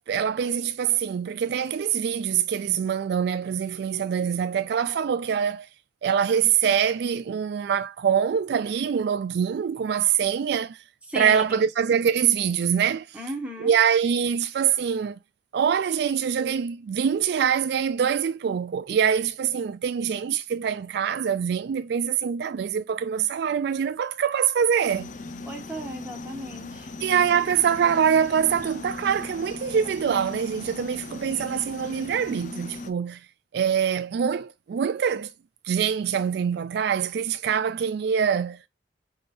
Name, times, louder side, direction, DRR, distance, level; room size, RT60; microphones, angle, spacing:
voice 1, 0.1-5.7 6.0-10.8 11.2-13.2 13.6-15.2 15.5-25.1 27.0-33.2 33.5-35.3 35.6-38.7, right 7 dB, 60° right, 0.3 m, -24 dB
voice 2, 11.1-11.6 13.1-13.8 25.5-26.9, right 1 dB, 5° right, 1.6 m, -35 dB
sound 1, 24.9-32.9, left 3 dB, 45° left, 0.6 m, -38 dB
5.5 x 3.6 x 2.5 m
head